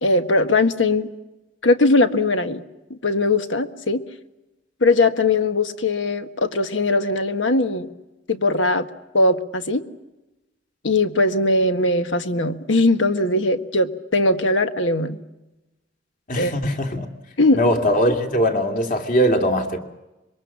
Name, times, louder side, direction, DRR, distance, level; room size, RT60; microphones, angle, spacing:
voice 1, 0.0-1.1 1.6-2.6 2.9-4.0 4.8-7.9 8.3-8.9 9.1-9.8 10.8-15.2 16.4-16.5 17.4-17.6, left 2 dB, 90° left, 1.6 m, -20 dB
voice 2, 16.3-17.1 17.5-19.8, equal, 45° left, 2.6 m, -20 dB
26.5 x 23.0 x 7.3 m
head